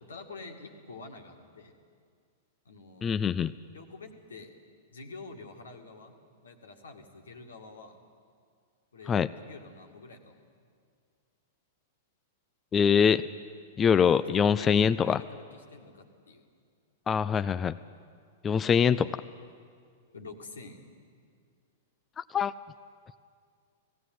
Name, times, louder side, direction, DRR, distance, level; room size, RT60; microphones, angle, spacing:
voice 1, 0.0-1.7 2.7-3.2 3.7-4.5 4.9-6.2 6.4-8.0 8.9-10.5 13.9-16.4 20.1-20.9, left 3 dB, 85° left, 4 dB, 2.1 m, -47 dB
voice 2, 3.0-3.5 9.1-9.3 12.7-13.3 13.8-15.2 17.1-17.8 18.4-19.1 22.2-22.5, left 7 dB, 25° left, 13 dB, 0.4 m, -24 dB
17.5 x 15.5 x 9.3 m, 2.2 s
hypercardioid pair, 110°, 0 cm